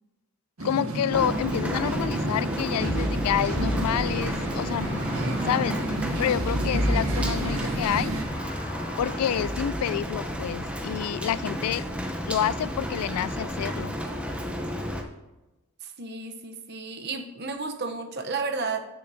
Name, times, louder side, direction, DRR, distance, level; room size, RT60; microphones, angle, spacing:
voice 1, 0.6-5.0 5.4-8.1 9.0-11.8 12.3-14.0, left 10 dB, 85° left, 20 dB, 0.3 m, -28 dB
sound 1, 0.6-8.2, right 1 dB, 70° right, 1.6 m, -31 dB
Rain, 1.1-15.0, equal, 5° right, 0.7 m, -32 dB
sound 2, 2.8-9.8, equal, 35° left, 2.0 m, -33 dB
voice 2, 15.8-18.9, right 4 dB, 50° right, 5 dB, 0.8 m, -32 dB
17.0 x 6.5 x 2.7 m, 1.1 s
head